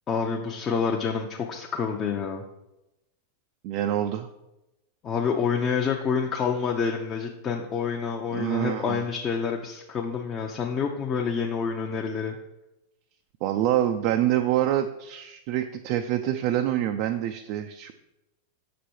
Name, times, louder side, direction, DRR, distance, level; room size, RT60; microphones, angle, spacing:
voice 1, 0.1-2.4 5.0-12.4, left 6 dB, 25° left, 1 dB, 0.6 m, -28 dB
voice 2, 3.6-4.3 8.3-9.0 13.4-17.9, right 12 dB, 45° right, 7 dB, 0.4 m, -26 dB
6.7 x 5.1 x 4.5 m, 0.96 s
figure-of-eight pair, 90°, 0 cm